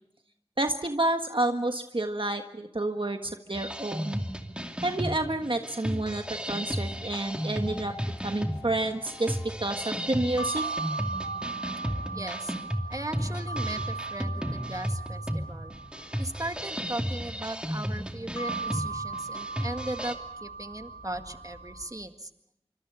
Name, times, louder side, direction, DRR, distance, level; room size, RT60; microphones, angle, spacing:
voice 1, 0.6-4.2 4.8-7.9 8.2-10.6, right 2 dB, 55° right, 5 dB, 1.5 m, -29 dB
sound 1, 3.5-20.1, equal, 10° right, 2.5 m, -34 dB
sound 2, 6.1-21.9, right 3 dB, 40° left, 5.5 m, -39 dB
voice 2, 12.1-12.5 12.9-15.7 16.2-22.3, right 1 dB, 35° right, 7 dB, 1.9 m, -38 dB
26.5 x 25.5 x 5.6 m, 0.78 s
wide cardioid pair, 40°, 10 cm